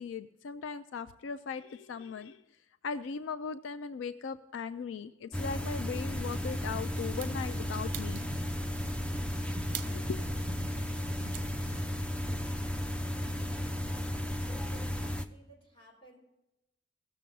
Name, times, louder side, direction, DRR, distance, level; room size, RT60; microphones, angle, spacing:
voice 1, 0.0-2.4 2.8-8.2 9.9-10.2, left 5 dB, 80° left, 12 dB, 0.4 m, -38 dB
sound 1, 5.3-15.3, left 1 dB, 5° left, 0.4 m, -34 dB
sound 2, 6.1-11.9, right 5 dB, 45° right, 0.7 m, -45 dB
voice 2, 14.7-16.2, right 2 dB, 25° left, -3 dB, 4.1 m, -57 dB
16.5 x 6.7 x 5.4 m, 0.94 s
head